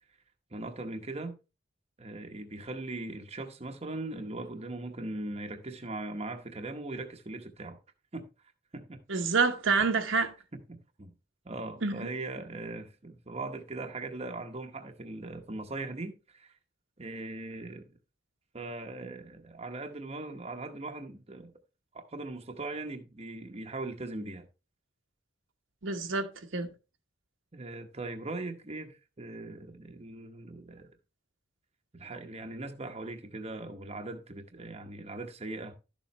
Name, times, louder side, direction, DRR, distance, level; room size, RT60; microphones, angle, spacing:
voice 1, 0.5-1.3 2.0-7.8 8.1-8.3 8.7-9.2 10.5-11.1 11.4-16.6 17.0-17.9 18.5-21.5 21.9-24.5 27.5-30.9 31.9-35.7, right 2 dB, 30° right, 0.9 m, -40 dB
voice 2, 9.1-10.3 11.8-12.1 25.8-26.7, right 4 dB, 65° right, 1.1 m, -28 dB
12.0 x 7.1 x 3.1 m
head